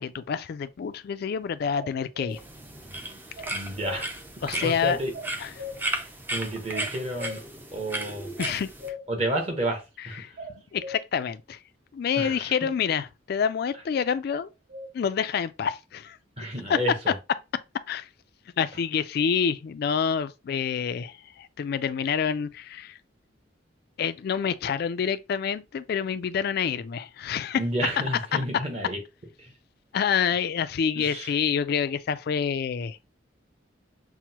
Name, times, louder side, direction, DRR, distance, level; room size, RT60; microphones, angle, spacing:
voice 1, 0.0-2.4 4.4-5.0 5.4-5.5 8.4-8.7 10.2-10.3 10.7-11.6 11.9-14.5 14.9-16.2 16.7-16.8 17.9-18.1 18.6-23.0 24.0-27.6 29.9-33.0, left 7 dB, 55° left, 0.3 m, -27 dB
sound 1, 1.7-2.4 3.4-4.0 5.1-5.9 6.7-7.4 8.4-9.1 10.4-11.0 14.3-14.9, left 2 dB, 90° right, 0.6 m, -38 dB
sound 2, 2.3-8.9, right 1 dB, 10° right, 0.4 m, -35 dB
voice 2, 3.5-5.1 6.3-7.4 7.7-8.3 9.1-10.4 12.2-12.7 16.4-17.1 27.6-29.0 29.4-29.5 30.9-31.4, right 1 dB, 35° right, 1.0 m, -31 dB
5.9 x 2.1 x 2.8 m
head